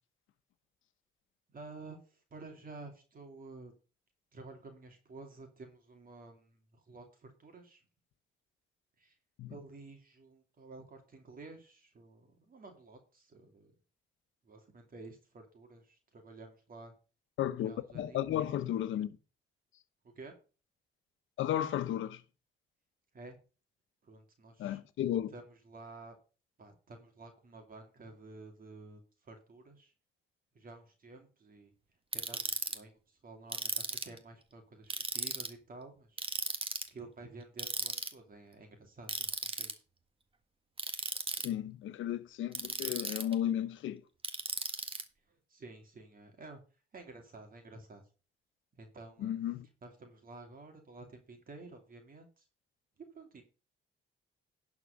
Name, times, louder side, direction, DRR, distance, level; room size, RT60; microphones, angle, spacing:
voice 1, 1.5-3.7 4.3-7.8 9.0-9.2 9.5-13.7 14.4-16.9 17.6-18.4 20.2-20.4 23.1-23.4 24.0-24.8 25.3-26.2 26.6-29.9 30.5-31.7 32.1-36.3 36.9-39.7 45.3-46.6 46.9-48.0 48.8-49.3 49.8-52.5 53.1-53.4, right 3 dB, 45° right, 2.6 m, -51 dB
voice 2, 17.4-19.2 21.4-22.2 24.6-25.3 41.4-44.0 49.2-49.7, left 11 dB, 75° left, 1.0 m, -34 dB
Ratchet pawl, 32.1-32.8 33.5-34.2 34.9-35.5 36.2-36.9 37.6-38.1 39.1-39.7 40.8-41.5 42.5-43.3 44.2-45.0, right 3 dB, 25° right, 1.6 m, -36 dB
11.0 x 4.8 x 6.4 m
cardioid pair, 90°, 20 cm